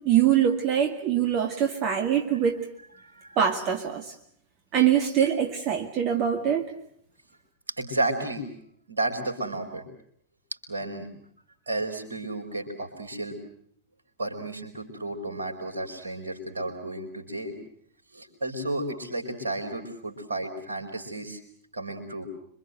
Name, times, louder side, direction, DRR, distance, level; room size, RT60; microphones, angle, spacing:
voice 1, 0.0-2.7 3.4-4.1 4.7-6.7, right 9 dB, 40° right, 5 dB, 2.1 m, -23 dB
voice 2, 3.0-3.4 7.8-8.5 8.9-9.8 10.7-11.1 11.7-13.4 14.2-17.6 18.1-21.4 21.7-22.3, right 2 dB, 75° right, 5 dB, 4.8 m, -32 dB
26.5 x 24.5 x 7.8 m, 0.66 s
figure-of-eight pair, 90°, 0 cm